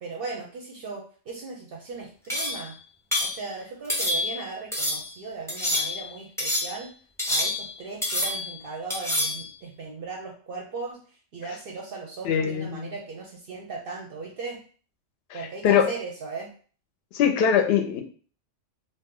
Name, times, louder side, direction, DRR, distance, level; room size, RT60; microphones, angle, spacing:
voice 1, 0.0-2.7 3.2-6.9 7.3-11.0 11.3-14.6 15.3-16.5, right 4 dB, 60° right, -1 dB, 0.7 m, -37 dB
sound 1, 2.3-2.7 3.1-3.4 3.9-4.4 4.7-5.1 5.5-6.1 6.4-6.8 7.2-8.5 8.9-9.4, left 1 dB, 5° left, 0.4 m, -27 dB
voice 2, 12.2-12.9 15.3-15.8 17.1-18.0, left 8 dB, 65° left, 5 dB, 0.7 m, -22 dB
2.7 x 2.1 x 3.6 m, 0.42 s
omnidirectional pair, 1.3 m